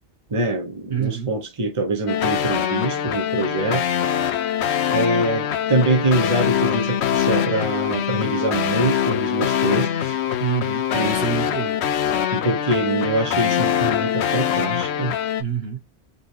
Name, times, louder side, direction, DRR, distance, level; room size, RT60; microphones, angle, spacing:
voice 1, 0.3-3.9 4.9-10.1 10.9-11.2 12.3-15.2, right 2 dB, 30° right, 1.0 m, -24 dB
voice 2, 0.9-1.3 10.4-11.8 15.4-15.8, right 7 dB, 65° right, 1.4 m, -26 dB
sound 1, 2.1-15.4, left 9 dB, 80° left, 0.9 m, -23 dB
5.0 x 3.1 x 3.3 m
omnidirectional pair, 1.1 m